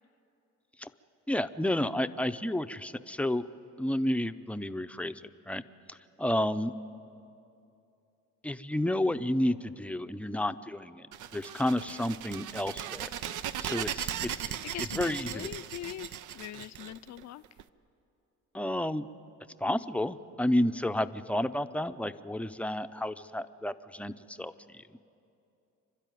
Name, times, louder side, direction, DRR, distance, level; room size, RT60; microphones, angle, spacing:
voice 1, 1.3-3.5 3.8-5.6 5.9-6.7 8.4-11.1 11.3-13.1 13.6-14.5 14.9-15.5 18.5-19.1 19.6-24.8, left 1 dB, 5° left, 10 dB, 0.6 m, -31 dB
sound 1, 11.1-17.6, right 10 dB, 80° right, 0.7 m, -38 dB
voice 2, 14.7-17.4, left 12 dB, 60° left, 15 dB, 0.6 m, -42 dB
29.0 x 12.5 x 9.3 m, 2.7 s
cardioid pair, 90°, 30 cm